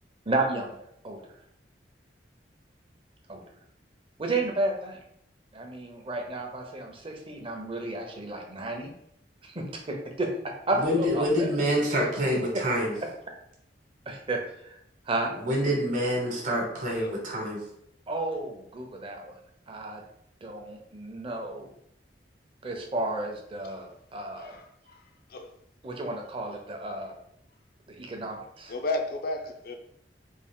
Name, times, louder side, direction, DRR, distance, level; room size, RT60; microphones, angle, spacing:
voice 1, 0.3-1.2 3.3-3.4 4.2-5.0 5.5-8.9 9.4-11.5 12.5-12.6 14.1-14.8 15.1-15.3 18.1-19.4 19.7-20.0 20.4-21.7 22.6-24.6 25.8-27.2 27.9-28.7, right 2 dB, 30° right, 0.6 m, -32 dB
voice 2, 10.7-12.9 15.4-17.6, equal, 45° right, 1.1 m, -26 dB
voice 3, 16.2-16.6 17.0-17.2 24.4-25.5 28.7-29.8, left 2 dB, 55° left, 0.5 m, -34 dB
3.6 x 2.4 x 3.6 m
head